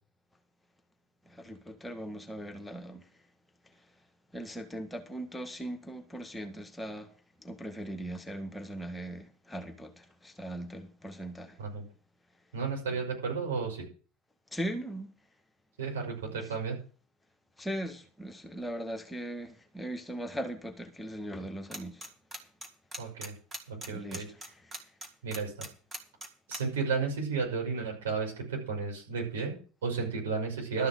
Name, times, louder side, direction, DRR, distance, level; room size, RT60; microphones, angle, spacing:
voice 1, 1.3-3.1 4.3-7.1 7.4-11.6 12.9-13.0 14.5-15.1 16.3-16.5 17.6-22.1 23.9-24.7, right 1 dB, 10° left, 1.8 m, -39 dB
voice 2, 12.5-13.8 15.8-16.8 23.0-23.3 23.7-24.3 25.2-25.5 26.5-30.9, right 5 dB, 75° right, 5.6 m, -33 dB
sound 1, 21.7-22.1 22.3-26.6, right 1 dB, 20° right, 2.9 m, -39 dB
12.5 x 6.1 x 7.8 m
figure-of-eight pair, 70°, 0 cm